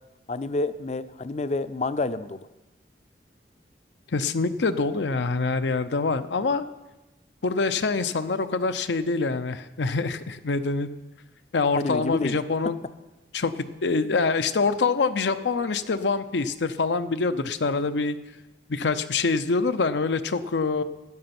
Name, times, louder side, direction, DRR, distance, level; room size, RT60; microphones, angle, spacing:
voice 1, 0.3-2.5 11.7-12.4, left 3 dB, 40° left, 14 dB, 0.5 m, -28 dB
voice 2, 4.1-6.7 7.4-10.9 11.5-12.8 13.3-18.2 18.7-20.8, left 4 dB, 90° left, 11 dB, 0.7 m, -25 dB
13.5 x 9.6 x 6.0 m, 1.1 s
head